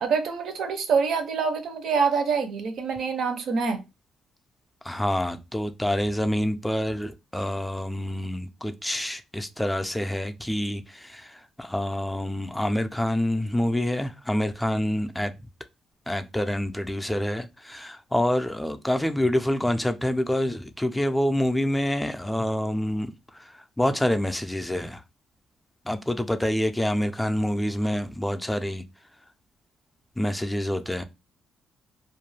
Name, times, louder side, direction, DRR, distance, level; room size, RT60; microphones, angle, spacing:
voice 1, 0.0-3.8, right 5 dB, 70° right, 0.6 m, -25 dB
voice 2, 4.8-15.3 16.1-25.0 25.9-28.8 30.2-31.0, left 1 dB, 5° left, 0.4 m, -27 dB
2.4 x 2.2 x 3.1 m
cardioid pair, 90°, 0 cm